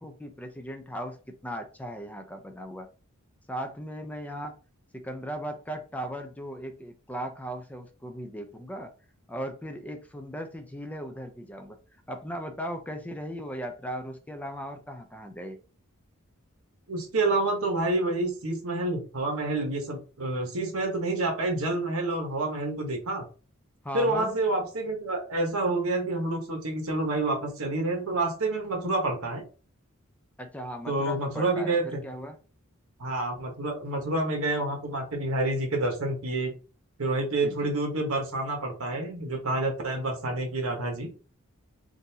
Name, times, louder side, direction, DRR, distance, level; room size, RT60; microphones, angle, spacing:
voice 1, 0.0-2.9 3.5-4.6 4.9-8.9 9.3-11.8 12.1-15.6 23.8-24.3 30.4-32.4 37.4-37.7, equal, 5° left, 5 dB, 0.4 m, -37 dB
voice 2, 16.9-23.3 23.9-29.4 30.9-32.0 33.0-36.5 37.0-41.1, right 2 dB, 75° right, 2 dB, 1.1 m, -28 dB
3.8 x 2.6 x 2.8 m, 0.36 s
head